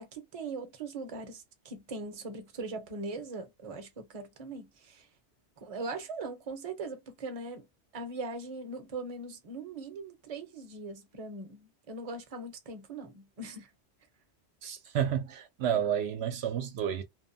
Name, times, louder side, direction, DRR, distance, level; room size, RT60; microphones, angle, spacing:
voice 1, 0.0-5.1 5.6-7.7 7.9-13.7, right 3 dB, 40° right, 0.7 m, -40 dB
voice 2, 14.6-17.0, right 9 dB, 75° right, 0.8 m, -30 dB
2.7 x 2.1 x 2.5 m
omnidirectional pair, 1.1 m